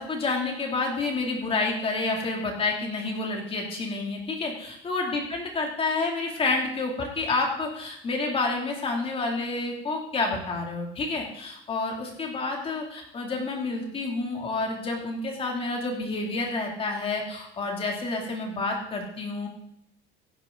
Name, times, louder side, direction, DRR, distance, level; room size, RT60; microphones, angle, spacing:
voice 1, 0.0-19.5, left 3 dB, 25° left, 1 dB, 2.8 m, -29 dB
15.5 x 10.0 x 3.9 m, 0.75 s
cardioid pair, 155°, 20 cm